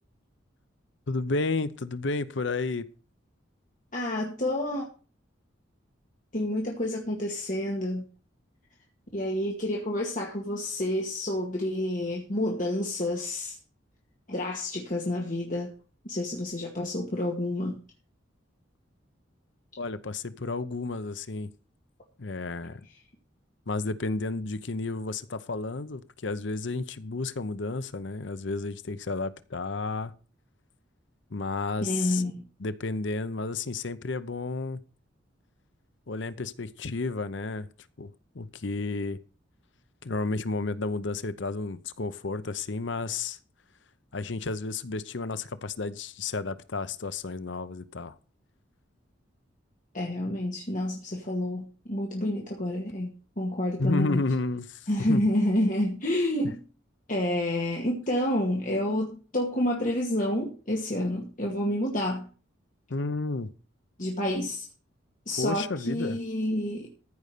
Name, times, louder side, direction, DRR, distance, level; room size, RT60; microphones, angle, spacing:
voice 1, 1.1-2.9 19.8-21.5 22.2-22.9 23.7-30.1 31.3-32.2 32.6-34.8 36.1-37.7 38.0-38.1 38.3-39.2 40.0-43.4 44.1-48.1 53.8-55.2 62.9-63.5 65.4-66.2, left 3 dB, 65° left, 14 dB, 0.8 m, -32 dB
voice 2, 3.9-4.9 6.3-8.1 9.1-13.6 14.3-15.7 16.0-17.7 31.8-32.5 49.9-54.2 54.9-56.6 57.1-62.3 64.0-64.7 65.3-66.9, left 1 dB, 40° left, -1 dB, 2.0 m, -29 dB
14.5 x 5.5 x 6.7 m, 0.37 s
head